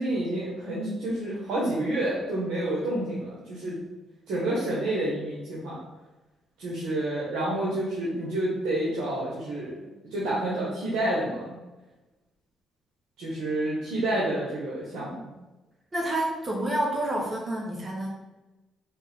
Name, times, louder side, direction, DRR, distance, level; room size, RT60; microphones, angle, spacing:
voice 1, 0.0-3.8 4.3-5.8 6.6-9.7 10.1-11.5 13.2-15.3, right 1 dB, 85° right, -7 dB, 1.3 m, -29 dB
voice 2, 15.9-18.1, right 1 dB, 30° right, -1 dB, 0.9 m, -28 dB
4.5 x 3.2 x 3.6 m, 1.1 s
cardioid pair, 90°, 0 cm